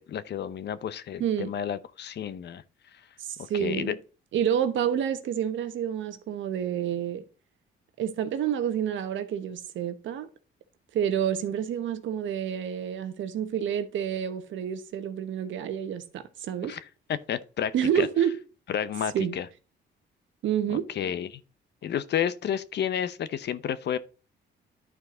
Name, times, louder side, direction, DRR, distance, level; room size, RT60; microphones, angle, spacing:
voice 1, 0.0-2.6 3.5-3.9 16.7-16.8 17.1-18.1 18.7-19.5 20.7-21.4 21.8-24.0, left 9 dB, 60° left, 0.7 m, -31 dB
voice 2, 1.2-1.5 3.2-4.0 4.3-7.2 8.0-10.3 10.9-16.8 17.7-18.4 19.1-19.3 20.4-20.9, right 9 dB, 75° right, 1.1 m, -28 dB
11.0 x 4.6 x 3.8 m
cardioid pair, 90°, 20 cm